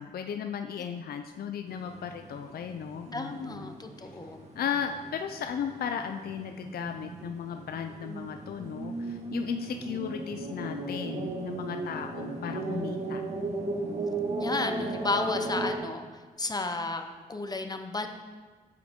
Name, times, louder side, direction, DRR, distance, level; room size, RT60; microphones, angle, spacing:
voice 1, 0.0-3.8 4.6-13.2, left 7 dB, 70° left, 6 dB, 0.5 m, -36 dB
sound 1, 1.7-15.8, right 2 dB, 45° right, 1.5 m, -36 dB
voice 2, 3.1-4.4 14.4-17.0 17.3-18.1, left 3 dB, 25° left, 6 dB, 0.7 m, -33 dB
9.0 x 7.6 x 3.6 m, 1.4 s
cardioid pair, 105°, 17 cm